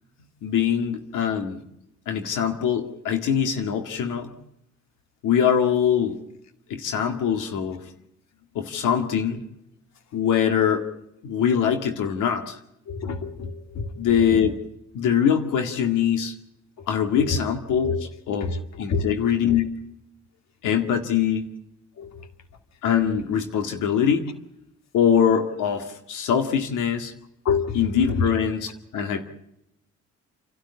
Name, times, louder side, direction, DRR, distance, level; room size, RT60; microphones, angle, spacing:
voice 1, 0.4-1.6 2.1-4.3 5.2-6.2 6.7-7.8 8.6-9.4 10.1-10.9 11.2-12.6 14.0-14.6 14.9-16.3 16.9-18.5 18.8-19.8 20.6-21.5 22.8-24.2 24.9-27.1 27.7-29.2, left 8 dB, 85° left, 6 dB, 2.0 m, -23 dB
voice 2, 12.9-13.9 17.2-17.4 17.8-18.1 18.9-19.1 22.0-22.1 27.5-27.8, left 5 dB, 60° left, 8 dB, 2.2 m, -27 dB
29.5 x 12.5 x 8.5 m, 0.82 s
cardioid pair, 90°, 30 cm